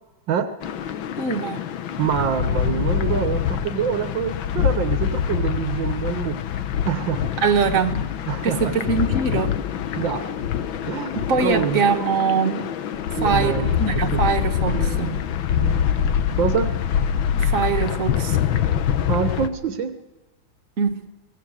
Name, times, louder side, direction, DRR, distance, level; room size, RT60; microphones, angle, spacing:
sound 1, 0.6-19.5, left 9 dB, 90° left, 1.7 m, -25 dB
voice 1, 1.2-1.7 7.4-8.1 8.4-9.5 11.3-12.7 13.2-15.1 17.3-18.4 20.8-21.0, right 5 dB, 45° right, 4 dB, 1.7 m, -23 dB
voice 2, 2.0-6.4 6.9-7.4 8.3-8.7 10.0-10.4 10.8-11.8 13.2-13.8 14.1-14.2 14.7-15.2 15.5-15.9 16.4-16.7 19.1-20.0, right 8 dB, 75° right, 8 dB, 1.8 m, -26 dB
23.0 x 18.0 x 6.5 m, 1.1 s
omnidirectional pair, 2.1 m